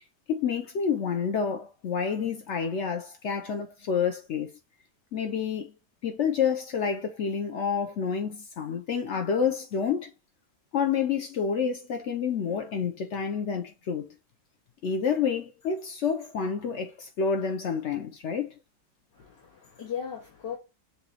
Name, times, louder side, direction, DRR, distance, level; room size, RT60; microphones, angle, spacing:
voice 1, 0.3-4.5 5.1-5.7 6.0-10.1 10.7-14.1 14.8-18.5, left 6 dB, 70° left, 0.6 m, -29 dB
voice 2, 19.1-20.6, left 8 dB, 85° left, 2.1 m, -37 dB
6.8 x 2.7 x 2.8 m
omnidirectional pair, 1.8 m